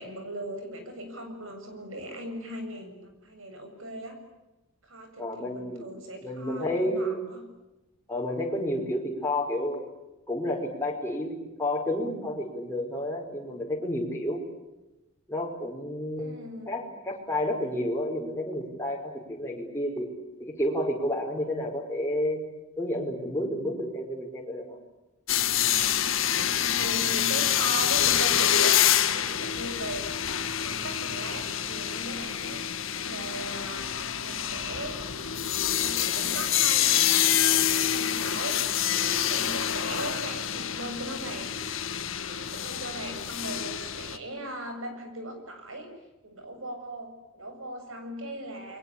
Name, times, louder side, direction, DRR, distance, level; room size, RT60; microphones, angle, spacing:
voice 1, 0.0-4.2 4.8-7.4 16.2-16.8 26.3-28.8 29.1-30.0 30.6-33.9 34.2-35.0 35.8-41.6 42.3-45.9 46.2-48.8, right 1 dB, 65° right, 6 dB, 7.4 m, -39 dB
voice 2, 5.2-5.9 6.2-7.2 8.1-9.8 10.3-11.3 11.6-14.4 15.3-16.4 16.7-20.1 20.4-22.4 22.8-24.8, left 1 dB, 10° left, -1 dB, 5.2 m, -30 dB
sound 1, 25.3-44.2, left 10 dB, 65° left, 1.9 m, -27 dB
29.0 x 23.5 x 8.7 m, 1.0 s
head